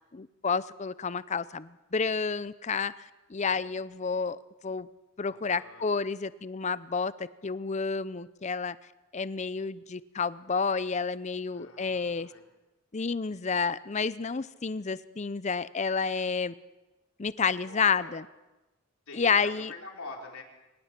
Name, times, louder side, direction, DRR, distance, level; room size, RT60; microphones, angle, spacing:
voice 1, 0.1-4.9 5.2-8.8 9.1-12.3 12.9-16.5 17.2-18.3 19.1-19.7, left 5 dB, 35° left, 16 dB, 0.6 m, -30 dB
voice 2, 5.2-5.9 11.5-12.5 17.6-18.1 19.1-20.4, left 3 dB, 85° left, 1 dB, 4.1 m, -46 dB
23.0 x 19.5 x 6.0 m, 1.1 s
head